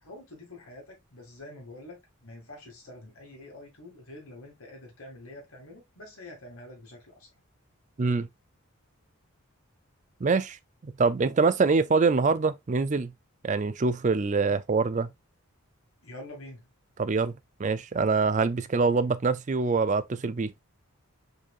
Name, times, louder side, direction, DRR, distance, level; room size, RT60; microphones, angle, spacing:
voice 1, 0.0-7.3 16.0-16.7, left 1 dB, 75° left, 2.2 m, -46 dB
voice 2, 10.2-10.6 10.8-13.1 13.4-15.1 17.0-20.5, right 4 dB, 35° right, 0.4 m, -25 dB
4.8 x 4.4 x 2.5 m
head